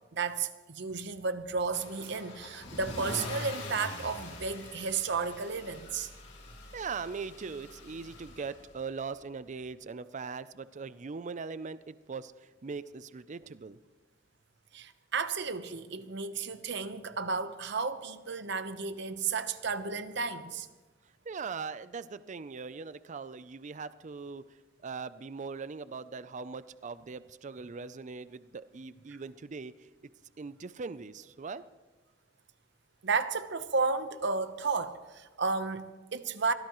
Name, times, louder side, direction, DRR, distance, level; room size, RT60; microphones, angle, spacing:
voice 1, 0.1-6.1 14.7-20.7 33.0-36.5, right 4 dB, 65° right, 0.9 m, -33 dB
Car / Engine starting / Accelerating revving vroom, 1.7-8.8, left 2 dB, 65° left, 3.3 m, -44 dB
voice 2, 6.7-13.8 21.2-29.9 30.4-31.6, right 5 dB, 40° right, 0.5 m, -40 dB
24.0 x 17.5 x 3.1 m
head